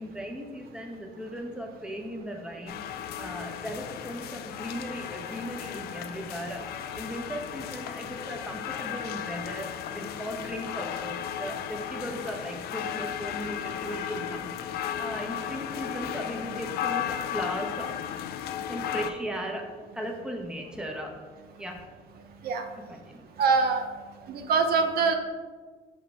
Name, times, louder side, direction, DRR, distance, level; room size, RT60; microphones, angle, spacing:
voice 1, 0.0-6.7 6.9-14.5 15.0-17.9 18.7-21.2 21.6-21.9 22.9-23.3, equal, 5° right, 1 dB, 0.9 m, -37 dB
sound 1, 2.7-19.1, left 10 dB, 65° left, 0.4 m, -35 dB
voice 2, 23.4-23.9 24.3-25.1, right 5 dB, 65° right, 5 dB, 0.6 m, -23 dB
6.5 x 4.8 x 3.3 m, 1.4 s
cardioid pair, 110°, 17 cm